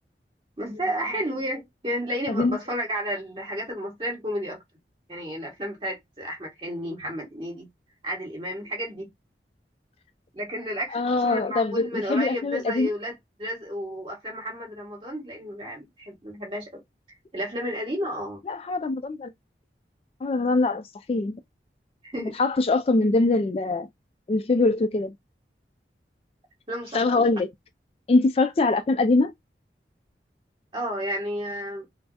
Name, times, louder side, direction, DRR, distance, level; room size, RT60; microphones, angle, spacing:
voice 1, 0.6-4.6 5.1-7.7 8.0-9.1 10.3-16.8 17.3-18.4 22.0-22.4 26.7-27.3 30.7-31.9, equal, 30° right, 1.8 m, -32 dB
voice 2, 10.9-12.9 18.5-19.3 20.2-21.4 22.4-23.9 24.3-25.1 26.9-27.5 28.1-29.3, left 3 dB, 35° left, 0.3 m, -23 dB
5.4 x 2.0 x 2.8 m
head